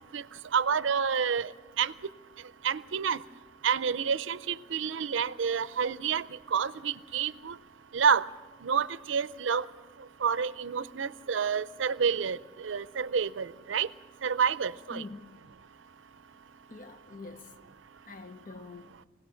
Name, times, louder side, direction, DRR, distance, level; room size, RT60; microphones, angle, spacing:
voice 1, 0.5-1.5 1.8-1.9 2.6-3.2 3.6-6.2 6.5-7.5 7.9-8.2 8.6-9.6 10.2-12.4 12.6-13.9 14.2-15.0, right 6 dB, 75° right, 0.5 m, -28 dB
voice 2, 14.9-15.3 16.7-17.5 18.1-18.9, left 3 dB, 45° left, 0.9 m, -45 dB
25.0 x 17.5 x 6.3 m
head